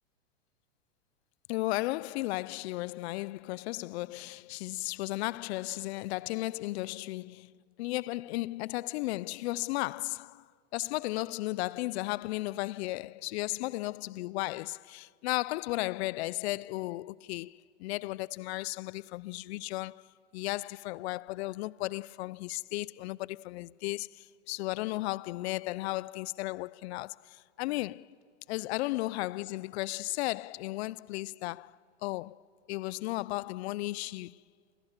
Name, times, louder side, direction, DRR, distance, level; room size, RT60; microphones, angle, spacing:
voice 1, 1.5-10.4 10.7-20.1 20.3-28.2 28.5-34.4, left 19 dB, 60° left, 0.6 m, -35 dB
28.0 x 21.0 x 7.4 m
hypercardioid pair, 115°, 37 cm